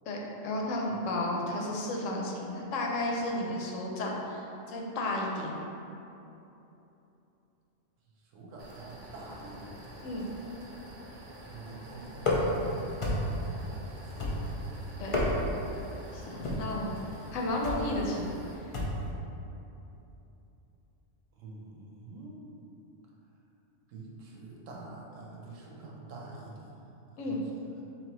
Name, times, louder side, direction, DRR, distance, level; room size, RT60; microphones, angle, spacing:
voice 1, 0.1-5.5 10.0-10.3 15.0-15.2 16.1-16.9 17.3-18.3 18.5-18.6 27.2-27.4, left 1 dB, 90° left, -1 dB, 1.0 m, -33 dB
voice 2, 8.3-9.8 11.5-12.7 13.5-14.5 14.9-15.2 21.4-22.4 23.9-26.7, right 2 dB, 85° right, -3 dB, 1.1 m, -46 dB
sound 1, 8.6-18.5, right 1 dB, 50° right, 0.6 m, -48 dB
sound 2, 12.2-12.7 13.0-13.5 14.2-14.6 15.0-15.6 16.4-16.8 17.6-17.9 18.7-19.1, left 1 dB, 50° left, 0.3 m, -30 dB
4.0 x 3.0 x 2.9 m, 2.9 s
omnidirectional pair, 1.3 m